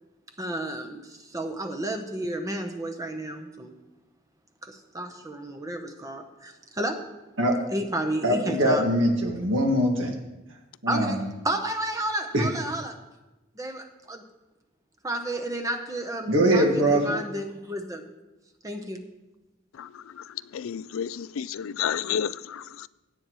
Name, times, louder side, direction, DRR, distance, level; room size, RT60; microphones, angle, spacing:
voice 1, 0.4-3.7 4.6-7.1 7.7-8.9 10.9-13.0 13.6-14.2 15.0-18.0 18.6-19.0, right 1 dB, 15° right, 5 dB, 0.8 m, -32 dB
voice 2, 8.2-10.2 10.8-11.2 12.3-12.5 16.3-17.0, equal, 65° right, 2 dB, 1.9 m, -22 dB
voice 3, 20.5-22.9, left 8 dB, 80° left, 17 dB, 0.4 m, -30 dB
17.0 x 8.8 x 3.1 m, 1.0 s
head